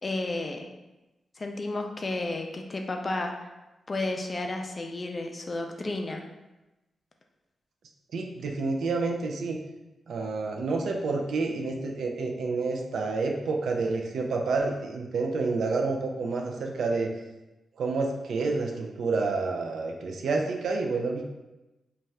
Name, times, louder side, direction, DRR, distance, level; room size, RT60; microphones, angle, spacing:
voice 1, 0.0-0.7 1.4-3.5 3.9-6.2, left 2 dB, 35° left, 3 dB, 0.3 m, -32 dB
voice 2, 8.1-9.6 10.1-17.1 17.8-21.2, right 3 dB, 80° right, 2 dB, 0.4 m, -29 dB
2.7 x 2.3 x 3.2 m, 1.0 s
cardioid pair, 100°, 0 cm